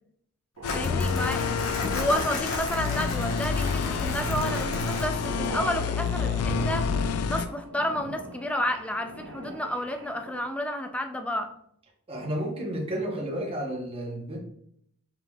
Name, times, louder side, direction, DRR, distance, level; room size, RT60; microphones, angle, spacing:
sound 1, 0.6-7.5, left 5 dB, 90° left, 0.3 m, -28 dB
Crumpling crinkling, 0.6-5.5, left 2 dB, 65° left, 1.1 m, -35 dB
sound 2, 0.6-10.5, right 1 dB, 90° right, 0.9 m, -41 dB
voice 1, 0.7-1.5 1.8-6.9 7.3-11.5, left 1 dB, 5° left, 6 dB, 0.3 m, -31 dB
voice 2, 12.1-14.4, right 1 dB, 25° right, -2 dB, 0.9 m, -32 dB
5.2 x 3.3 x 2.3 m, 0.70 s
head